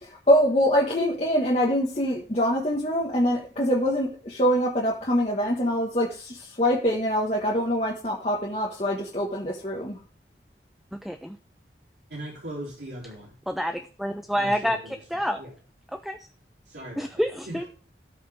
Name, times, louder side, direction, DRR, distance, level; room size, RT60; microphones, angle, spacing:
voice 1, 0.0-10.0, equal, 35° left, 1.5 m, -24 dB
voice 2, 10.9-11.4 13.5-15.4 15.9-16.3 17.0-17.6, equal, ahead, 0.4 m, -28 dB
voice 3, 12.1-13.3 14.3-14.9 15.4-15.5 16.6-17.7, right 1 dB, 75° right, 3.4 m, -39 dB
17.0 x 5.8 x 3.5 m
head